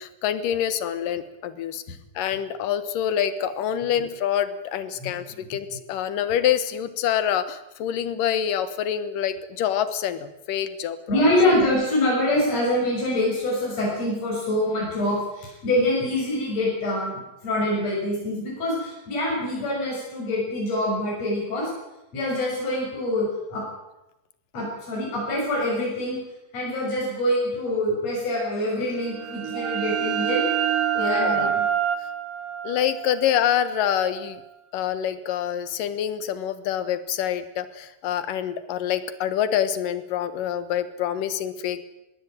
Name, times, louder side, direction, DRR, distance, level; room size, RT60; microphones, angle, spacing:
voice 1, 0.0-11.2 30.9-31.5 32.6-34.4 34.7-41.8, left 10 dB, 75° left, 14 dB, 2.9 m, -26 dB
voice 2, 11.1-21.7 22.1-23.6 24.5-26.2 26.5-30.4 31.0-31.6, left 1 dB, 50° left, -5 dB, 8.0 m, -25 dB
sound 1, 29.0-34.5, right 10 dB, 70° right, 1.4 m, -27 dB
21.5 x 16.0 x 9.0 m, 0.93 s
omnidirectional pair, 4.0 m